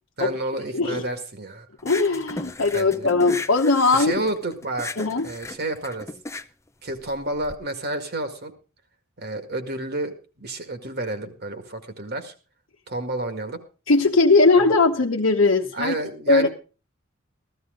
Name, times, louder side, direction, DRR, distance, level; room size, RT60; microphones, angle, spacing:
voice 1, 0.2-1.7 2.7-3.1 3.9-4.9 5.2-6.1 6.8-8.5 9.2-12.3 12.9-13.6 14.6-14.7 15.7-16.5, right 2 dB, 50° right, 8 dB, 2.0 m, -30 dB
voice 2, 1.8-4.1 5.0-5.3 13.9-16.0 16.3-16.5, left 3 dB, 65° left, -1 dB, 1.0 m, -19 dB
sound 1, 1.8-7.5, left 3 dB, 15° left, 0.6 m, -36 dB
15.0 x 14.0 x 3.8 m, 0.34 s
head